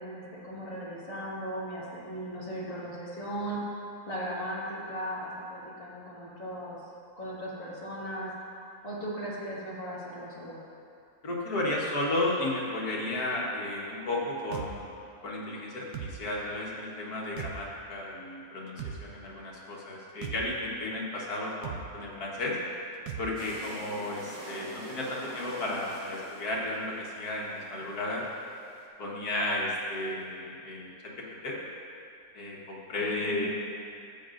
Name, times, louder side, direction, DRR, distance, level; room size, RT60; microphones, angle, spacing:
voice 1, 0.0-3.6 4.1-6.8 7.2-8.3 8.8-10.6 33.0-33.5, right 1 dB, 35° left, -7 dB, 1.9 m, -37 dB
voice 2, 11.2-14.9 15.2-22.6 23.2-28.2 29.0-30.9 31.4-31.6 32.3-33.5, left 2 dB, 70° left, -4 dB, 1.9 m, -33 dB
sound 1, 14.5-14.7 15.9-16.1 17.4-17.6 18.8-19.0 20.2-20.4 21.6-21.8 23.1-23.3, right 8 dB, 80° right, 1.2 m, -37 dB
sound 2, 23.4-28.9, right 1 dB, 60° right, 1.6 m, -46 dB
13.5 x 7.6 x 2.5 m, 2.5 s
omnidirectional pair, 1.7 m